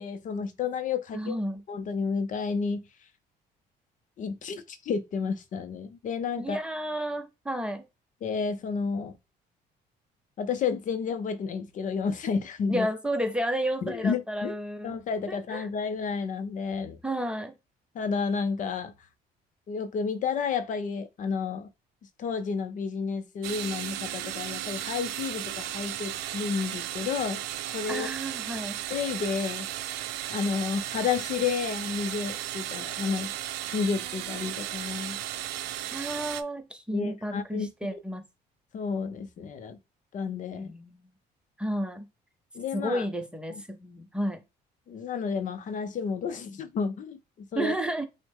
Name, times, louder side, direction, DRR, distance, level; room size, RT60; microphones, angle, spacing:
voice 1, 0.0-1.4 1.7-2.9 4.2-6.6 8.2-9.1 10.4-12.9 13.8-14.5 14.8-17.0 17.9-18.9 19.7-21.7 22.2-27.4 27.7-28.1 28.9-30.0 30.3-33.3 33.7-35.2 36.9-38.0 38.7-39.8 40.1-40.7 42.5-43.0 43.5-43.6 44.9-47.7, left 5 dB, 50° left, 0.6 m, -31 dB
voice 2, 1.1-1.6 6.4-7.9 12.7-15.0 15.3-15.7 17.0-17.6 27.9-28.8 35.8-38.2 40.6-41.1 41.6-42.0 42.7-44.4 47.6-48.1, right 1 dB, 5° right, 0.7 m, -32 dB
sound 1, 23.4-36.4, right 13 dB, 85° right, 0.5 m, -35 dB
6.0 x 2.1 x 3.5 m
cardioid pair, 110°, 17 cm